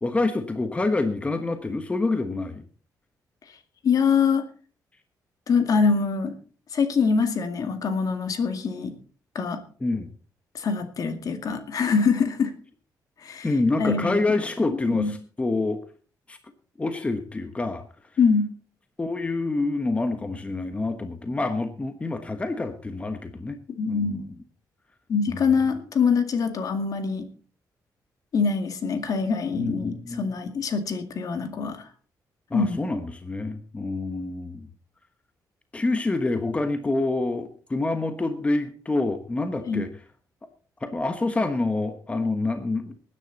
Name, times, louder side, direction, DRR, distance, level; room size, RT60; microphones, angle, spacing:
voice 1, 0.0-2.6 9.8-10.1 13.4-15.8 16.3-16.4 16.8-17.8 19.0-23.6 23.9-24.3 29.6-30.3 32.5-34.7 35.7-39.9 40.8-42.9, left 2 dB, 15° left, 8 dB, 1.2 m, -27 dB
voice 2, 3.8-4.5 5.5-6.3 6.7-8.9 9.3-9.6 10.5-12.5 13.2-13.5 13.8-14.2 14.9-15.1 18.2-18.5 23.8-24.3 25.1-27.3 28.3-31.8 32.5-32.8 39.7-39.8, left 5 dB, 55° left, 7 dB, 2.2 m, -24 dB
20.0 x 9.9 x 4.1 m, 0.40 s
cardioid pair, 130°, 7 cm